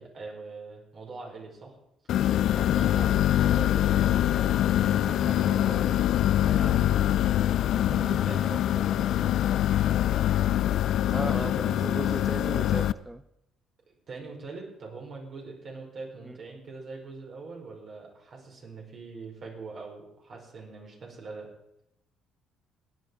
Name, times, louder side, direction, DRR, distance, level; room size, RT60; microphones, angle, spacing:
voice 1, 0.0-1.8 2.5-4.6 4.8-7.4 7.7-9.8 11.2-11.5 11.8-11.9 14.1-21.5, right 3 dB, 55° right, -1 dB, 5.4 m, -42 dB
sound 1, 2.1-12.9, left 12 dB, 65° left, 0.4 m, -24 dB
voice 2, 11.1-13.2 16.2-16.4, right 1 dB, 15° right, 11 dB, 0.7 m, -36 dB
16.5 x 9.9 x 4.8 m, 0.80 s
supercardioid pair, 80°, 0 cm